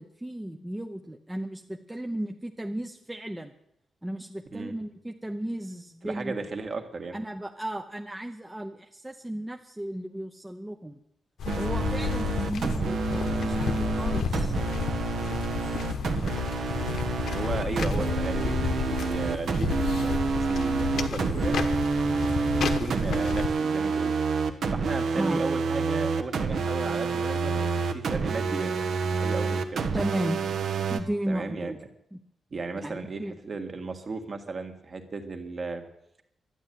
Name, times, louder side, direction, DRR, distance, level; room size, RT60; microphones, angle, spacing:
voice 1, 0.0-3.5 4.0-6.4 7.1-11.0 11.5-14.6 25.1-25.4 29.9-30.4 30.9-31.8 32.1-32.2 32.7-33.4, right 1 dB, 10° right, 3 dB, 0.7 m, -35 dB
voice 2, 6.0-7.2 17.3-21.6 22.6-24.1 24.7-28.8 29.1-29.8 31.3-31.7 32.5-35.8, right 3 dB, 35° right, 5 dB, 1.8 m, -35 dB
sound 1, 11.4-23.5, left 6 dB, 70° left, 1.1 m, -31 dB
sound 2, 11.5-31.0, right 4 dB, 60° right, 1.3 m, -28 dB
12.0 x 10.0 x 9.2 m, 0.77 s
wide cardioid pair, 150°, 0 cm